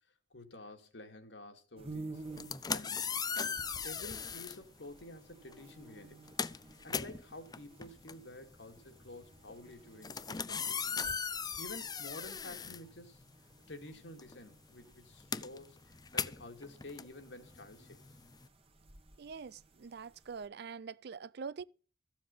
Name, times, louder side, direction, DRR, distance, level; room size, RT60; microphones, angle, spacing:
voice 1, 0.3-2.2 2.7-3.0 3.4-3.6 3.8-6.2 6.8-11.0 11.6-13.2 13.7-15.8 16.1-18.0, left 2 dB, 80° left, 2.4 m, -50 dB
sound 1, 1.7-20.5, right 3 dB, 35° right, 1.5 m, -54 dB
sound 2, 2.2-4.6 5.5-5.7 6.0-13.5 13.8-18.5, left 6 dB, 20° left, 0.5 m, -39 dB
voice 2, 19.2-21.6, right 5 dB, 65° right, 0.5 m, -44 dB
14.5 x 7.4 x 5.6 m
head